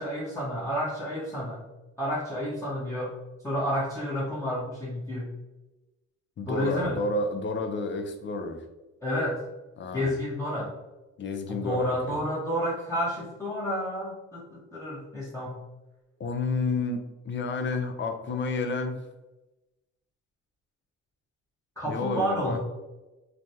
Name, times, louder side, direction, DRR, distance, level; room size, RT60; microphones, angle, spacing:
voice 1, 0.0-1.6 2.0-3.2 3.4-5.3 6.5-7.0 9.0-9.4 9.9-10.7 11.5-15.6 21.8-22.6, equal, 10° left, -9 dB, 0.9 m, -30 dB
voice 2, 6.4-8.6 9.8-10.1 11.2-12.2 16.2-19.0 21.9-22.6, left 3 dB, 40° left, 5 dB, 0.5 m, -30 dB
3.3 x 2.2 x 2.7 m, 1.0 s
cardioid pair, 90°, 30 cm